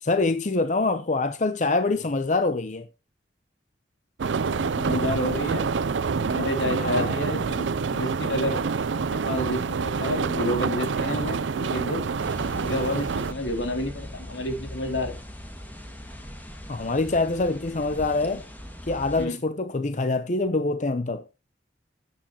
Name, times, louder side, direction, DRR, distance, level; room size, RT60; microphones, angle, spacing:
voice 1, 0.0-2.9 6.8-7.1 16.7-18.4 18.9-21.2, left 3 dB, 40° left, 0.7 m, -25 dB
sound 1, 4.2-13.3, right 5 dB, 80° right, 0.5 m, -27 dB
voice 2, 4.5-5.7 6.2-8.6 8.9-12.0 12.5-15.2 19.2-19.4, left 1 dB, 80° left, 2.9 m, -30 dB
sound 2, 12.2-19.3, equal, 10° left, 1.9 m, -40 dB
13.5 x 9.4 x 2.9 m
head